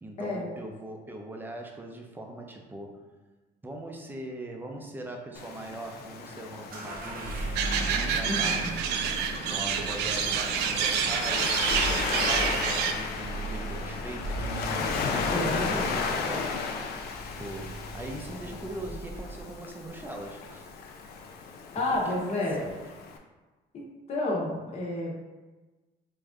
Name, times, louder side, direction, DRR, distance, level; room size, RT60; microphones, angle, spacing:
voice 1, 0.0-3.0 3.6-7.4 7.8-8.7 9.2-14.4 14.8-16.7 17.4-20.6 22.1-22.9, right 1 dB, 10° right, 1 dB, 0.5 m, -40 dB
Waves surf, 5.3-23.2, left 5 dB, 70° left, 0.5 m, -35 dB
sound 1, 6.7-19.6, right 1 dB, 65° right, 0.8 m, -38 dB
sound 2, 7.5-12.9, right 7 dB, 85° right, 0.4 m, -28 dB
voice 2, 8.2-8.7 15.3-15.9 21.7-22.6 23.7-23.8 24.1-25.1, left 2 dB, 40° left, -4 dB, 0.8 m, -30 dB
3.3 x 2.5 x 3.5 m, 1.2 s
cardioid pair, 110°, 17 cm